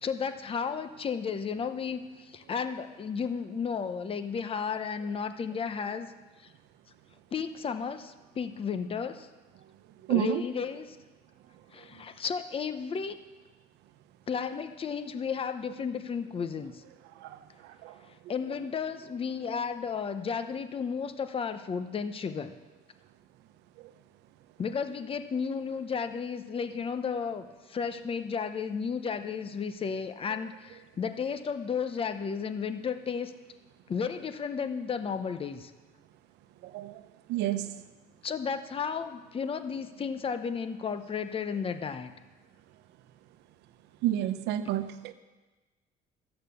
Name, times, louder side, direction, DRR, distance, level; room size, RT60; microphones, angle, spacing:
voice 1, 0.0-6.1 6.4-6.5 7.3-9.3 10.1-11.0 11.7-13.2 14.3-16.8 18.3-22.6 24.6-33.3 33.9-35.7 38.2-42.1, left 6 dB, 35° left, 10 dB, 0.8 m, -33 dB
voice 2, 10.1-10.4 17.2-17.4 17.8-17.9 36.6-37.0 37.3-37.7 44.0-45.1, right 13 dB, 90° right, 11 dB, 0.8 m, -29 dB
12.5 x 9.0 x 6.9 m, 1.2 s
cardioid pair, 110°, 17 cm